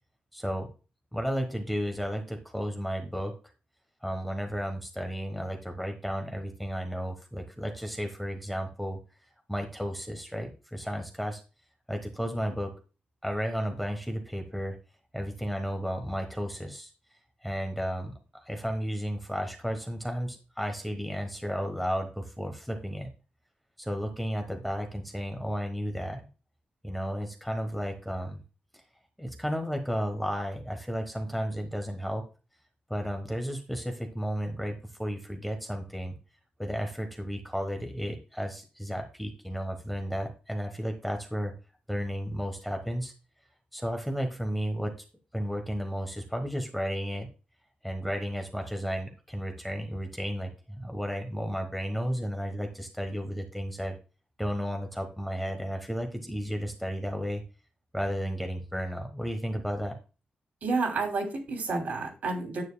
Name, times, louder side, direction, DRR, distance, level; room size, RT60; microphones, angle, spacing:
voice 1, 0.3-0.7 1.1-3.3 4.0-9.0 9.5-11.4 11.9-12.8 13.2-14.8 15.1-16.9 17.4-23.1 23.8-26.2 26.8-28.4 29.2-32.2 32.9-36.2 36.6-41.5 41.9-43.1 43.7-44.9 45.3-47.3 47.8-54.0 54.4-57.4 57.9-60.0, equal, ahead, 4 dB, 1.1 m, -33 dB
voice 2, 60.6-62.6, right 3 dB, 60° right, 2 dB, 2.9 m, -30 dB
9.6 x 9.2 x 2.2 m, 0.33 s
wide cardioid pair, 165°, 3 cm